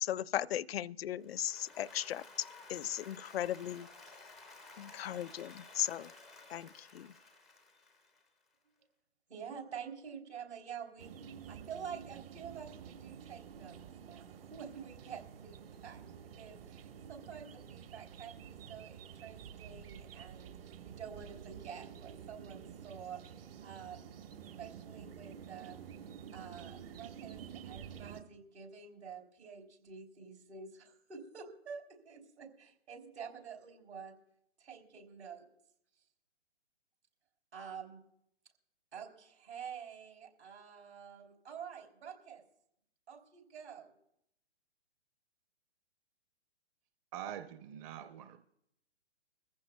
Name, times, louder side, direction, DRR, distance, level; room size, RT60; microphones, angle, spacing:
voice 1, 0.0-2.2 2.7-3.9 4.8-6.1 6.5-6.7 6.9-7.1, left 11 dB, 60° left, 0.5 m, -36 dB
Applause, 1.2-8.4, left 3 dB, ahead, 0.4 m, -55 dB
voice 2, 9.3-11.1 11.5-23.2 23.6-24.1 24.6-25.8 26.3-34.1 34.6-35.5 37.5-38.0 38.9-42.4 43.1-43.9, right 7 dB, 70° right, 3.7 m, -48 dB
sound 1, 11.0-28.2, right 8 dB, 55° right, 1.5 m, -50 dB
voice 3, 47.1-48.4, right 10 dB, 30° right, 0.7 m, -44 dB
23.0 x 15.0 x 2.3 m
figure-of-eight pair, 130°, 35 cm